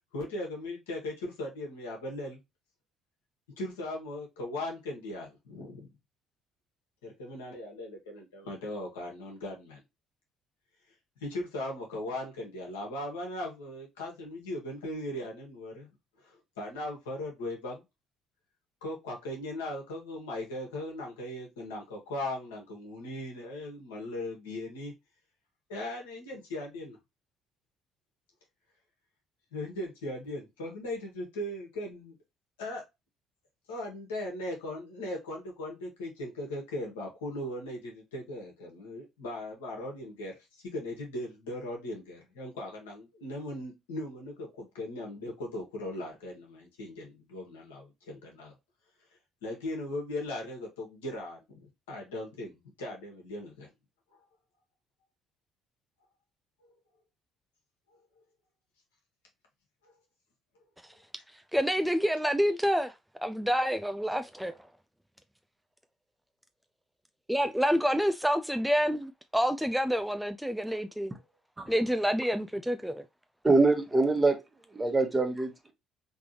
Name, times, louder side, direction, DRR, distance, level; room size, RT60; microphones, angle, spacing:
voice 1, 0.1-2.4 3.6-5.9 7.0-9.8 11.2-15.9 16.2-17.8 18.8-24.9 25.7-27.0 29.5-32.1 32.6-32.8 33.7-48.5 49.4-53.7, left 1 dB, 75° left, 1.4 m, -38 dB
voice 2, 61.3-63.0 63.2-64.5 67.3-71.1 71.7-73.0, equal, 5° right, 0.4 m, -28 dB
voice 3, 73.4-74.4 74.7-75.5, right 3 dB, 20° right, 1.2 m, -24 dB
3.7 x 3.2 x 2.9 m
figure-of-eight pair, 50°, 0 cm